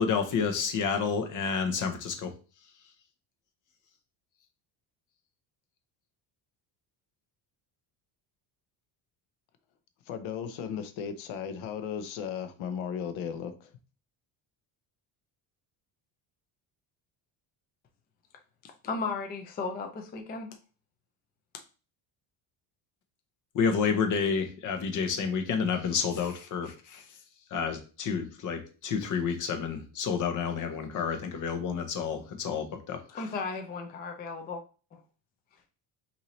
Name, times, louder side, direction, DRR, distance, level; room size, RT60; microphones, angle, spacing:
voice 1, 0.0-2.3 23.5-27.1 27.5-33.2, left 6 dB, 40° left, 0.8 m, -30 dB
voice 2, 10.1-13.7, left 7 dB, 75° left, 0.8 m, -36 dB
voice 3, 18.6-20.5 33.1-34.6 34.9-35.0, left 4 dB, 20° left, 0.3 m, -35 dB
5.5 x 2.8 x 3.1 m
cardioid pair, 165°, 48 cm